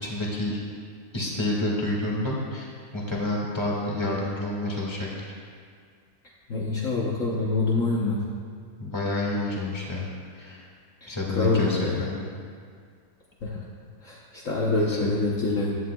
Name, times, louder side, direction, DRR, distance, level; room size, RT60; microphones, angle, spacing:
voice 1, 0.0-0.6 1.1-2.7 2.9-5.1 8.8-10.1 10.3-10.7 11.1-12.2 14.6-15.1, left 2 dB, 15° left, -4 dB, 1.9 m, -29 dB
voice 2, 6.5-8.3 11.3-12.0 13.4-13.6 14.0-15.8, left 3 dB, 55° left, -5 dB, 1.3 m, -25 dB
15.5 x 11.0 x 2.3 m, 2.1 s
omnidirectional pair, 1.8 m